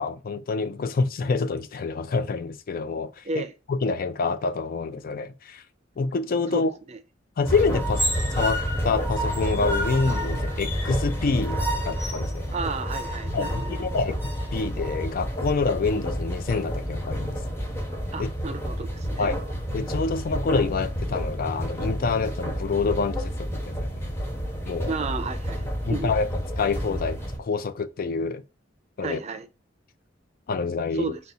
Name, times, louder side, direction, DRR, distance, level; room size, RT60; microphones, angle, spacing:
voice 1, 0.0-3.4 3.7-5.6 6.0-6.7 7.4-8.0 8.3-11.6 11.9-12.5 13.3-14.2 14.5-17.4 18.2-18.3 19.2-19.4 19.7-23.9 24.7-24.9 25.8-26.3 26.6-28.4 29.0-29.2 30.5-31.1, left 4 dB, 50° left, 0.4 m, -27 dB
voice 2, 6.5-7.0 12.5-14.0 18.1-19.3 24.9-26.1 29.0-29.5 30.9-31.2, right 4 dB, 35° right, 0.5 m, -33 dB
sound 1, 7.4-27.4, equal, 15° left, 1.0 m, -29 dB
4.1 x 2.3 x 3.8 m
head